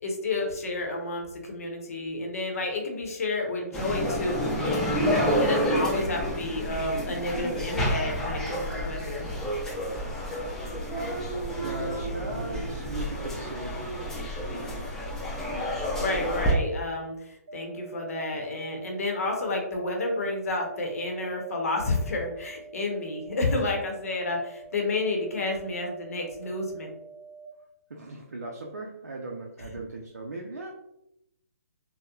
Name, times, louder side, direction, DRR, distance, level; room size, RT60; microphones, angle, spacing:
voice 1, 0.0-4.8 5.4-9.3 16.0-26.9, left 2 dB, 65° left, 1 dB, 0.7 m, -30 dB
sound 1, 3.7-16.5, equal, 5° left, 0.4 m, -29 dB
voice 2, 11.6-13.9 27.9-30.7, right 2 dB, 85° right, -1 dB, 0.4 m, -37 dB
sound 2, 17.5-27.5, right 5 dB, 40° right, 0.9 m, -47 dB
2.9 x 2.0 x 2.3 m, 0.83 s
hypercardioid pair, 140°, 9 cm